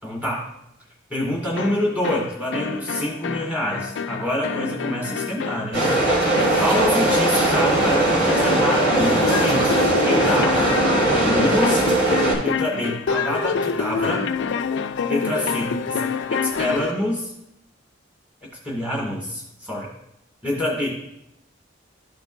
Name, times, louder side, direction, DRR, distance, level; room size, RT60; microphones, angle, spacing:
voice 1, 0.0-0.5 1.1-5.9 6.6-10.6 11.2-11.8 12.4-14.2 15.1-16.0 16.3-17.3 18.6-19.9 20.4-21.0, left 1 dB, 10° right, -4 dB, 2.0 m, -26 dB
sound 1, 1.6-17.0, left 5 dB, 65° left, 0.4 m, -27 dB
sound 2, 5.7-12.3, right 2 dB, 65° right, 3.4 m, -19 dB
13.5 x 5.2 x 2.6 m, 0.79 s
head